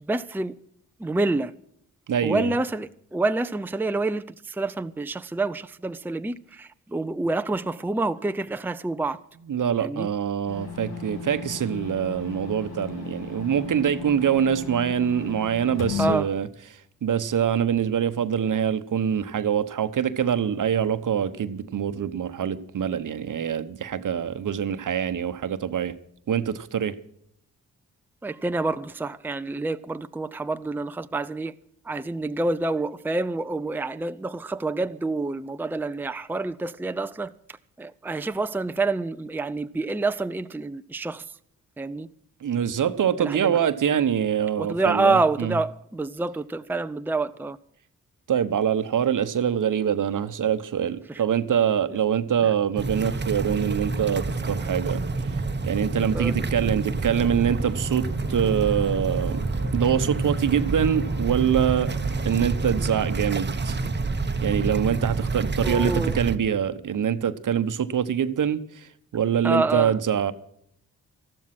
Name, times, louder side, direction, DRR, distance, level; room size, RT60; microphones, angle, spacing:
voice 1, 0.1-0.5 1.0-1.5 2.2-9.2 9.8-10.1 16.0-16.3 28.2-31.5 31.8-41.2 41.8-42.1 43.2-43.6 44.6-47.6 51.1-51.2 51.9-52.0 56.1-56.3 65.6-66.2 69.4-70.0, right 3 dB, 5° right, 0.6 m, -27 dB
voice 2, 2.1-2.5 9.5-16.5 17.0-25.9 26.3-27.0 42.4-45.5 48.3-59.4 59.7-61.9 62.2-63.8 64.4-70.3, right 8 dB, 60° right, 1.1 m, -24 dB
sound 1, 10.5-16.1, left 7 dB, 80° left, 2.7 m, -35 dB
sound 2, 52.8-66.4, right 3 dB, 30° right, 1.0 m, -28 dB
sound 3, 57.4-63.3, left 5 dB, 45° left, 2.6 m, -44 dB
13.5 x 12.5 x 6.0 m
supercardioid pair, 45°, 36 cm